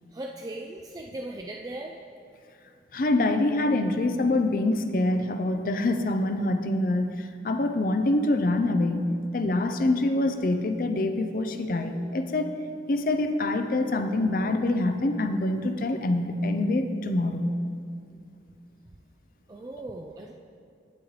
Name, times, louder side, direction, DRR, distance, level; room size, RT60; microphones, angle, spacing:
voice 1, 0.1-2.0 19.5-20.3, right 1 dB, 20° right, 0 dB, 0.3 m, -38 dB
voice 2, 2.9-12.6 12.9-17.5, left 2 dB, 50° left, 7 dB, 0.5 m, -25 dB
8.6 x 8.4 x 3.1 m, 2.5 s
head